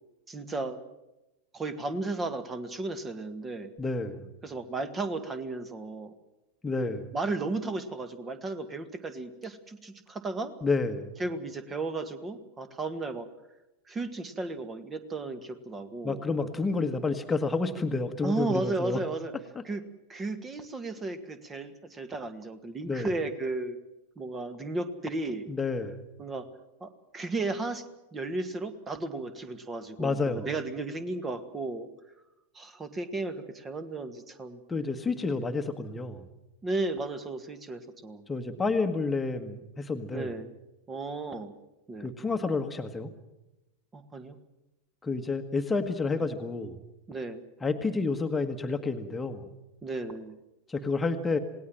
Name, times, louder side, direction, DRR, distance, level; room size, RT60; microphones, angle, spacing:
voice 1, 0.3-0.8 1.5-3.7 4.4-6.1 6.8-10.5 11.2-13.3 13.9-16.2 18.2-19.3 19.6-19.8 20.1-23.8 24.2-25.5 26.2-26.5 26.8-27.8 28.1-31.9 32.5-34.6 35.4-35.5 36.6-38.2 40.1-40.5 40.9-41.5 41.9-42.1 43.9-44.4 47.1-47.4 49.8-50.4, right 2 dB, 20° right, 10 dB, 1.9 m, -34 dB
voice 2, 3.8-4.2 6.6-7.0 10.6-11.1 16.0-19.0 22.9-23.1 25.5-26.0 30.0-30.5 34.7-36.3 38.3-40.3 42.0-43.1 45.0-46.8 47.6-49.5 50.7-51.4, left 3 dB, 10° left, 6 dB, 1.6 m, -29 dB
27.5 x 18.5 x 7.6 m, 0.97 s
figure-of-eight pair, 90°, 0 cm